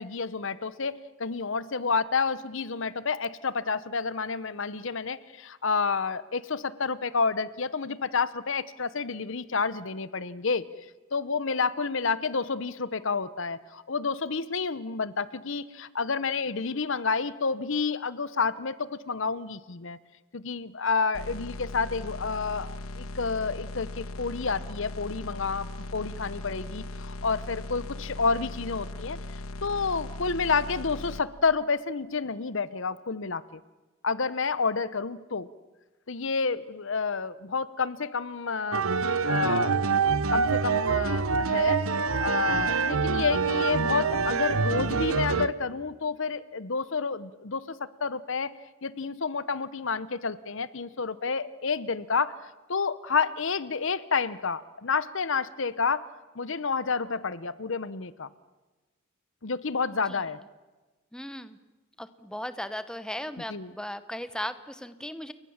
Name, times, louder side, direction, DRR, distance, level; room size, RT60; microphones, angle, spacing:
voice 1, 0.0-10.7 11.1-20.0 20.3-29.2 29.6-33.6 34.0-35.5 36.1-38.9 39.3-40.0 40.3-41.8 42.2-48.5 48.8-52.3 52.7-56.0 56.4-58.3 59.4-60.4 63.5-63.7, left 5 dB, 60° left, 16 dB, 0.8 m, -29 dB
sound 1, 21.1-31.2, left 2 dB, 75° left, 1.3 m, -38 dB
sound 2, 38.7-45.5, right 5 dB, 75° right, 0.9 m, -25 dB
voice 2, 61.1-61.6 62.0-65.3, left 1 dB, 5° left, 12 dB, 1.0 m, -37 dB
29.5 x 23.0 x 7.3 m, 1.2 s
head